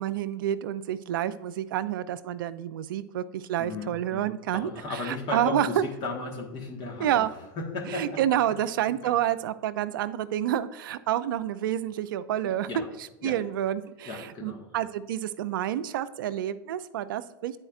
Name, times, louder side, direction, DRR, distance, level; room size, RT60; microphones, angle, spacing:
voice 1, 0.0-5.8 7.0-7.3 7.9-12.7 13.2-17.5, right 11 dB, 75° right, 14 dB, 0.4 m, -29 dB
voice 2, 3.6-4.2 4.5-7.2 7.6-8.4 9.0-9.1 12.4-12.9 13.2-13.4 14.0-14.7, left 3 dB, 45° left, 0 dB, 1.3 m, -35 dB
9.7 x 4.3 x 2.4 m, 1.0 s
hypercardioid pair, 105°, 11 cm